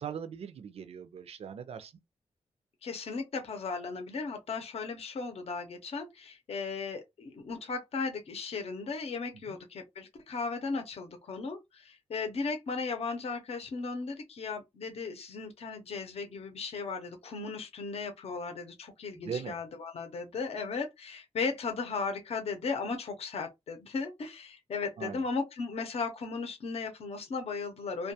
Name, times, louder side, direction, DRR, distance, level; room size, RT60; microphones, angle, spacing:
voice 1, 0.0-1.9 9.5-9.6 19.1-19.6 25.0-25.2, right 7 dB, 60° right, 0.4 m, -40 dB
voice 2, 2.8-28.1, left 4 dB, 60° left, 0.6 m, -36 dB
2.2 x 2.2 x 2.7 m
wide cardioid pair, 130°, 12 cm